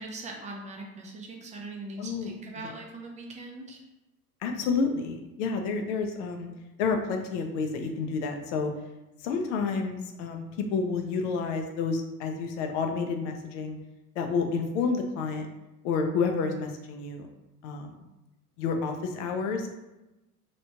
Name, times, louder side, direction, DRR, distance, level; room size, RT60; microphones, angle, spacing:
voice 1, 0.0-3.8, right 2 dB, 15° right, 0 dB, 0.6 m, -41 dB
voice 2, 2.0-2.3 4.4-6.5 6.8-8.7 9.2-13.8 14.1-15.5 15.8-17.3 17.6-17.9 18.6-19.7, left 4 dB, 50° left, 4 dB, 0.6 m, -29 dB
3.1 x 2.9 x 2.8 m, 1.0 s
figure-of-eight pair, 70°, 47 cm